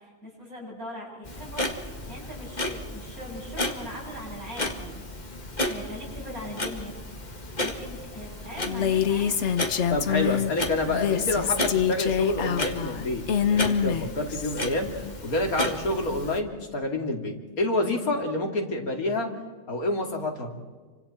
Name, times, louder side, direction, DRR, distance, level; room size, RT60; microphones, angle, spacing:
voice 1, 0.0-7.3 7.6-9.5 14.0-14.2, equal, 85° right, -3 dB, 8.7 m, -41 dB
Clock, 1.2-16.4, left 1 dB, 30° left, 1.9 m, -34 dB
Female speech woman speaking, 8.7-10.5 10.9-14.6, left 8 dB, 55° left, 1.2 m, -25 dB
voice 2, 9.9-13.2 13.5-19.3 19.7-20.5, left 2 dB, 80° left, 2 dB, 3.2 m, -28 dB
29.5 x 25.5 x 4.4 m, 1.4 s
omnidirectional pair, 1.5 m